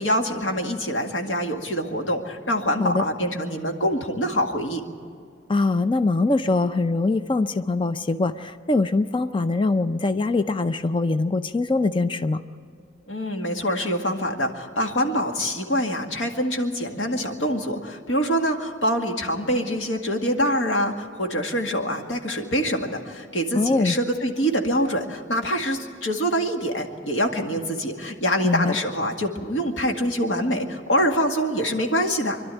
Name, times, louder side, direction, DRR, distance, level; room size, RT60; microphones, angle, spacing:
voice 1, 0.0-4.8 13.1-32.4, equal, 75° left, 3 dB, 2.0 m, -25 dB
voice 2, 5.5-12.4 23.5-24.0 28.4-28.8, left 3 dB, 25° left, 11 dB, 0.5 m, -23 dB
26.0 x 12.0 x 9.1 m, 2.3 s
head